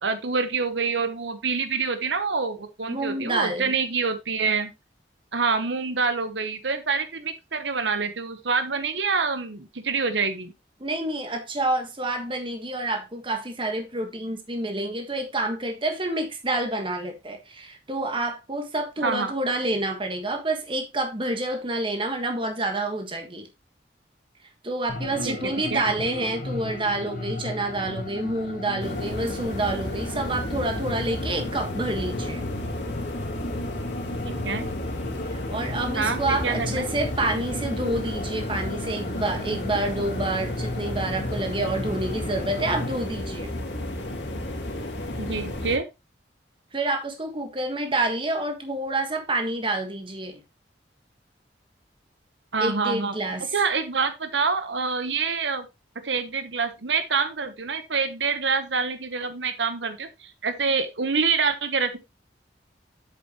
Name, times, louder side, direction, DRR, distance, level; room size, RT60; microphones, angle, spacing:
voice 1, 0.0-4.7 5.3-10.5 19.0-19.3 25.2-25.3 25.7-25.8 34.2-34.7 35.9-36.8 45.2-45.9 52.5-53.1 53.5-55.7 56.0-62.0, right 5 dB, 85° right, 1.1 m, -26 dB
voice 2, 2.9-3.7 10.8-23.5 24.6-32.4 35.3-43.5 46.7-50.4 52.6-53.5, right 2 dB, 30° right, 1.6 m, -28 dB
sound 1, 24.9-42.9, left 1 dB, 50° left, 1.4 m, -35 dB
sound 2, 28.8-45.8, left 1 dB, 75° left, 2.1 m, -33 dB
8.1 x 7.5 x 3.0 m
head